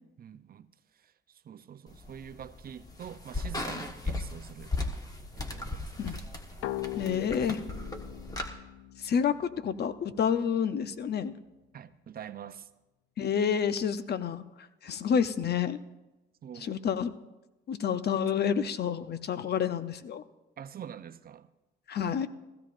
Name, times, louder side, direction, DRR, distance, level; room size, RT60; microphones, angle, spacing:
voice 1, 0.2-0.7 0.9-4.7 5.4-6.2 11.7-12.7 16.4-16.8 20.6-21.5 22.0-22.1, right 9 dB, 50° right, 0.6 m, -45 dB
sound 1, 1.9-8.5, left 2 dB, 20° left, 1.3 m, -37 dB
sound 2, 6.6-10.1, left 15 dB, 85° left, 0.4 m, -40 dB
voice 2, 7.0-7.6 9.0-11.3 13.2-15.8 16.6-17.1 17.7-20.2 21.9-22.3, left 7 dB, 55° left, 0.7 m, -29 dB
16.0 x 15.5 x 2.5 m
cardioid pair, 90°, 20 cm